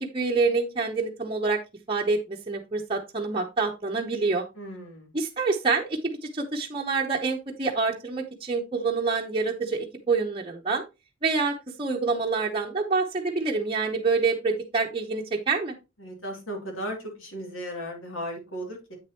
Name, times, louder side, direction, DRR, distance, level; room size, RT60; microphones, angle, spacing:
voice 1, 0.0-1.6 1.9-4.4 5.1-10.8 11.2-15.7, right 4 dB, 25° right, -1 dB, 0.8 m, -27 dB
voice 2, 4.6-5.1 16.0-19.0, equal, 70° left, 1 dB, 2.8 m, -36 dB
8.4 x 6.6 x 2.9 m, 0.26 s
head